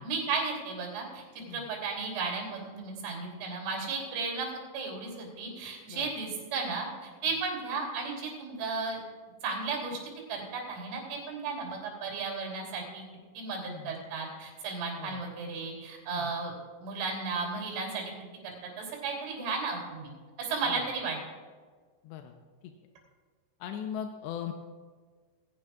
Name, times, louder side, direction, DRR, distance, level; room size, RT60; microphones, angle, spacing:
voice 1, 0.0-4.5 4.7-9.0 9.4-10.0 10.3-13.0 13.4-16.5 16.8-18.1 18.4-20.1 20.4-21.2, right 4 dB, 85° right, 0 dB, 5.8 m, -34 dB
voice 2, 22.0-22.3 22.6-22.7 23.6-24.5, left 9 dB, 80° left, 4 dB, 2.6 m, -39 dB
20.0 x 16.0 x 2.4 m, 1.5 s
omnidirectional pair, 5.6 m